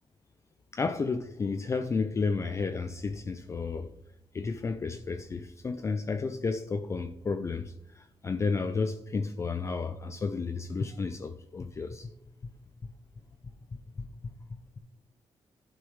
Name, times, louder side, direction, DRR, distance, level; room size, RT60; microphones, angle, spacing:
voice 1, 0.7-3.9 4.3-12.1 12.4-12.5 14.0-14.3, left 4 dB, 30° left, 0.4 m, -32 dB
11.0 x 5.3 x 3.1 m
cardioid pair, 125°, 10 cm